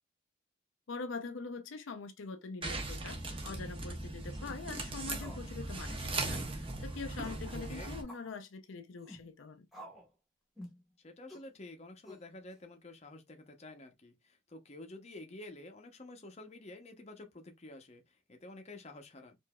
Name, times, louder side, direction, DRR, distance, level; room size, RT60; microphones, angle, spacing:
voice 1, 0.9-9.7, left 4 dB, 75° left, 0.5 m, -44 dB
sound 1, 2.6-8.0, right 2 dB, 25° right, 0.7 m, -39 dB
sound 2, 4.2-4.6 5.1-5.5 5.7-5.8 6.2-6.4 7.2-7.5 8.1-8.3 9.0-9.2 9.7-10.1 10.6-10.8 11.3-11.5 12.0-12.5, equal, ahead, 1.2 m, -51 dB
voice 2, 7.5-7.9 11.0-19.4, left 2 dB, 35° left, 0.7 m, -50 dB
4.7 x 2.6 x 2.2 m
head